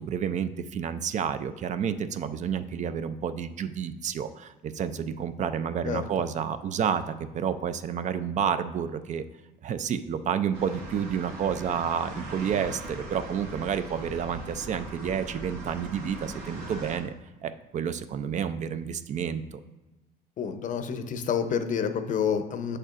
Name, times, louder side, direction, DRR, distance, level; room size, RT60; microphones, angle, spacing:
voice 1, 0.0-9.2 9.6-17.1 17.4-19.6, right 8 dB, 45° right, 11 dB, 0.4 m, -30 dB
sound 1, 10.5-17.0, right 1 dB, 85° right, 2.1 m, -40 dB
voice 2, 20.4-22.8, left 7 dB, 50° left, 9 dB, 0.6 m, -28 dB
7.6 x 6.6 x 2.5 m, 1.0 s
cardioid pair, 110°, 17 cm